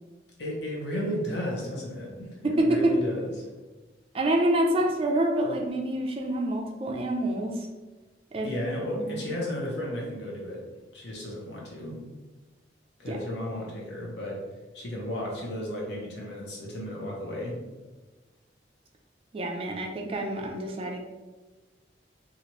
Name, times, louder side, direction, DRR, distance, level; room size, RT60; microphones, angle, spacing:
voice 1, 0.4-3.5 8.4-10.6 10.9-12.0 13.0-14.4 14.7-17.6, equal, 65° left, -3 dB, 0.8 m, -33 dB
voice 2, 2.4-3.0 4.1-7.7 8.3-8.5 8.9-9.3 13.1-13.2 19.3-21.0, right 1 dB, 30° right, 1 dB, 0.3 m, -27 dB
2.9 x 2.4 x 2.9 m, 1.2 s
head